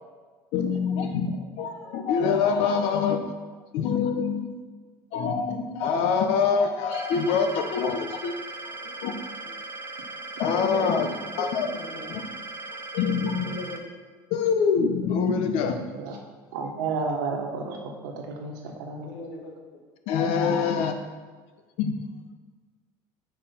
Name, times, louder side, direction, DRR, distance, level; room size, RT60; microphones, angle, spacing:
voice 1, 0.5-3.2 3.7-4.5 5.1-8.4 8.8-9.2 9.5-9.6 10.4-11.1 11.4-11.7 12.1-12.2 12.9-13.5 14.3-15.8 20.1-20.9 21.8-22.0, left 6 dB, 70° left, 7 dB, 1.0 m, -25 dB
sound 1, 6.9-13.8, right 3 dB, 20° right, 1.3 m, -38 dB
voice 2, 10.6-10.9 11.6-12.0 13.4-13.8 19.0-19.5 20.3-20.7, left 4 dB, 85° left, -1 dB, 2.0 m, -38 dB
voice 3, 16.5-19.1 20.4-20.7, right 4 dB, 90° right, 2 dB, 1.4 m, -32 dB
8.1 x 4.8 x 5.7 m, 1.4 s
supercardioid pair, 105°, 10 cm